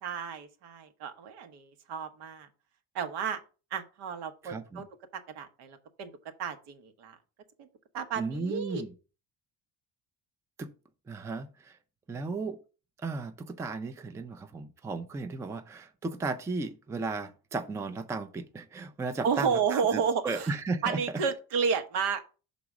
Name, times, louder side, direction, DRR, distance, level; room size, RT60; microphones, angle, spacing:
voice 1, 0.0-2.5 2.9-3.4 3.7-4.9 5.1-6.1 6.4-7.2 7.9-8.8 12.1-12.5 19.2-20.5 20.8-22.2, right 6 dB, 85° right, 1.1 m, -32 dB
voice 2, 4.4-4.8 8.2-8.9 10.6-10.7 11.1-11.7 12.1-12.6 13.0-21.0, right 3 dB, 10° right, 0.3 m, -35 dB
6.0 x 4.0 x 4.8 m
cardioid pair, 130°, 39 cm